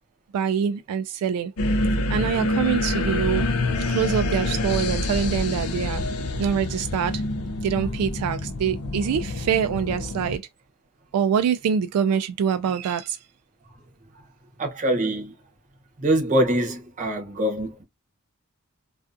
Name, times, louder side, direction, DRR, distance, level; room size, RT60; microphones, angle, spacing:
voice 1, 0.3-1.5 2.1-3.5 3.9-6.0 6.4-7.2 7.6-10.4 11.1-13.2, right 7 dB, 80° right, 0.3 m, -24 dB
sound 1, 1.6-10.4, left 2 dB, 70° left, 0.5 m, -26 dB
voice 2, 14.6-15.3 16.0-17.8, right 1 dB, 35° right, 0.7 m, -24 dB
2.5 x 2.3 x 2.4 m
head